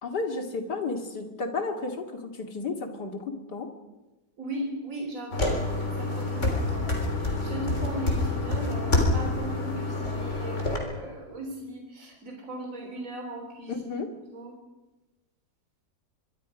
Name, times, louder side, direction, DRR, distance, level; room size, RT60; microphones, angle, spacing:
voice 1, 0.0-3.7 13.7-14.1, left 3 dB, 70° left, 4 dB, 3.0 m, -32 dB
voice 2, 4.4-5.6 6.0-6.9 7.2-13.7 14.3-14.5, right 1 dB, 50° right, 1 dB, 3.9 m, -37 dB
sound 1, 5.3-10.8, left 2 dB, 40° left, 4.1 m, -27 dB
25.0 x 23.0 x 5.2 m, 1.1 s
omnidirectional pair, 1.8 m